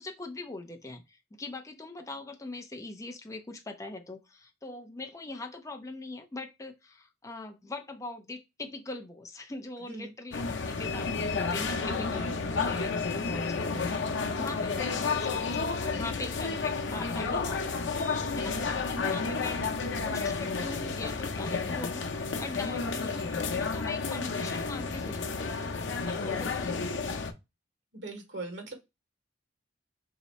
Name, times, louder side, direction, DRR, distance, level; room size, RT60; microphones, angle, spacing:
voice 1, 0.0-19.7 20.0-25.8 26.1-26.8, left 2 dB, 15° left, 0.5 m, -41 dB
sound 1, 10.3-27.3, left 4 dB, 80° left, 0.6 m, -31 dB
voice 2, 11.9-12.6 27.9-28.7, right 2 dB, 90° right, 1.3 m, -41 dB
3.0 x 2.8 x 4.1 m
head